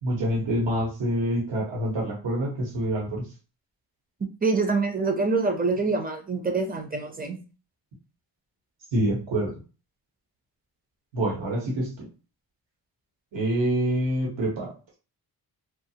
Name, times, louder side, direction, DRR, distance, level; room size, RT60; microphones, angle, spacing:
voice 1, 0.0-3.3 8.9-9.5 11.1-12.1 13.3-14.8, right 1 dB, 80° right, -3 dB, 1.2 m, -26 dB
voice 2, 4.4-7.4, right 3 dB, 20° right, 5 dB, 0.6 m, -25 dB
2.4 x 2.4 x 2.8 m, 0.34 s
cardioid pair, 80°, 44 cm